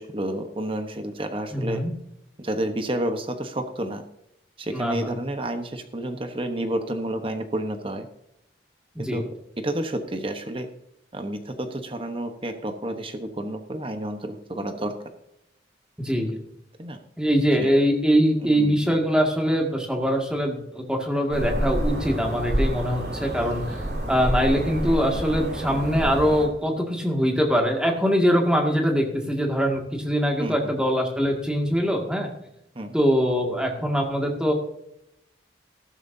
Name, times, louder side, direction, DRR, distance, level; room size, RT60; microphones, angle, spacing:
voice 1, 0.0-1.8 2.4-4.0 4.6-8.1 9.0-9.3 9.6-10.7 11.1-14.9 16.8-17.0 17.6-17.7 18.4-18.9 30.4-30.7 32.7-32.9, right 1 dB, 30° right, 7 dB, 1.0 m, -30 dB
voice 2, 1.5-1.9 4.7-5.2 9.0-9.2 16.0-16.4 17.2-23.8 24.1-32.3 32.9-34.5, equal, 5° right, 1 dB, 2.0 m, -23 dB
sound 1, 21.3-26.5, equal, 65° right, 4.1 m, -28 dB
14.0 x 12.5 x 2.7 m, 0.80 s
head